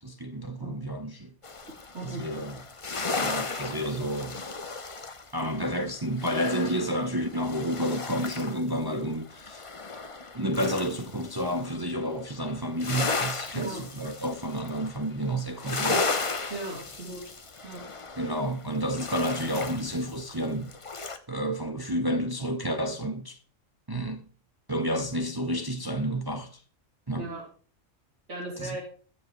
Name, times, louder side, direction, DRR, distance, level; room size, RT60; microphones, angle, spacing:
voice 1, 0.0-1.3 2.0-2.6 3.2-4.4 5.3-9.7 10.3-16.0 18.2-23.4 23.9-24.3 24.7-26.6 27.1-27.3 28.6-28.8, equal, 20° right, 0.7 m, -30 dB
sound 1, 1.4-8.7 9.0-11.8 12.1-21.2, left 3 dB, 30° left, 0.8 m, -35 dB
voice 2, 13.5-13.8 16.5-17.3 17.6-17.9 27.2-27.4 28.3-28.8, right 2 dB, 60° right, 4.2 m, -37 dB
21.0 x 7.4 x 3.2 m
omnidirectional pair, 1.3 m